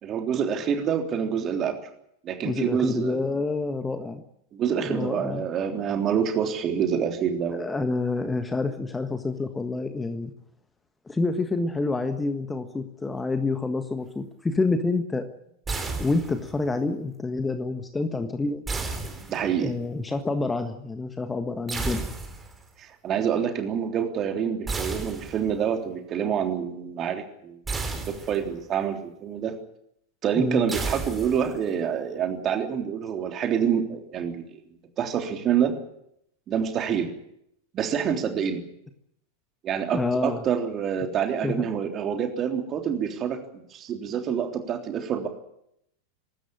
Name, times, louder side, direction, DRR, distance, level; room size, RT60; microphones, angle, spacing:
voice 1, 0.0-1.8 2.2-3.2 4.5-7.7 19.3-19.8 22.8-27.6 28.1-29.6 30.2-34.4 35.0-35.7 36.5-37.1 37.7-38.6 39.6-43.4 43.7-45.3, right 8 dB, 30° right, 5 dB, 3.4 m, -27 dB
voice 2, 2.4-4.2 4.8-5.5 7.5-10.3 11.1-15.2 16.0-18.6 19.6-22.0 30.3-30.7 39.9-40.4 41.4-41.7, left 3 dB, 10° left, 8 dB, 1.5 m, -28 dB
sound 1, 15.7-16.6 18.7-19.8 21.7-22.6 24.7-25.7 27.7-28.6 30.7-31.7, right 3 dB, 15° right, 3.9 m, -33 dB
24.0 x 13.0 x 9.9 m, 0.77 s
figure-of-eight pair, 90°, 0 cm